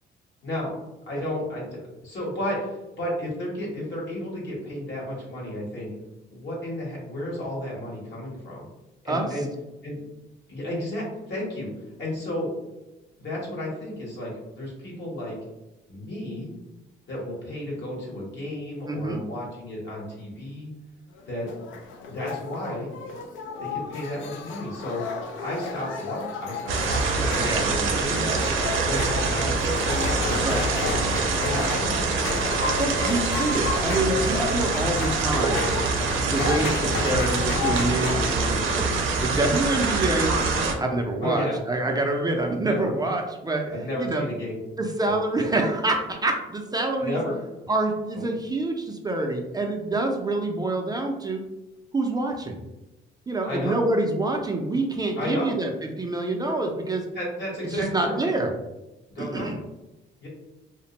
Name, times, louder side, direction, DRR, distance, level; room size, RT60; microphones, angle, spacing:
voice 1, 1.1-5.9 6.3-8.7 9.0-9.5 9.8-10.0 10.5-11.7 12.0-12.5 13.2-15.4 15.9-16.5 17.1-20.7 21.3-21.5 22.1-22.9 23.6-25.0 25.4-33.1 41.2-41.6 42.6-42.9 43.7-44.6 45.0-45.2 47.0-47.3 48.1-48.3 53.4-53.8 55.2-55.5 57.1-58.3 59.1-59.5 60.2-60.3, left 1 dB, 60° left, -4 dB, 1.0 m, -33 dB
voice 2, 18.9-19.2 27.4-28.4 30.4-30.6 32.8-35.6 36.2-38.9 39.2-40.4 40.8-43.7 44.0-44.2 44.8-47.2 47.7-51.4 51.9-52.6 53.3-55.7 56.0-57.0 57.7-58.5 59.2-59.6, right 2 dB, 20° right, 2 dB, 0.4 m, -26 dB
sound 1, 21.2-38.1, left 5 dB, 80° left, 0.4 m, -33 dB
sound 2, 26.7-40.7, right 4 dB, 80° right, 0.5 m, -25 dB
2.5 x 2.1 x 2.9 m, 1.0 s
cardioid pair, 90°, 20 cm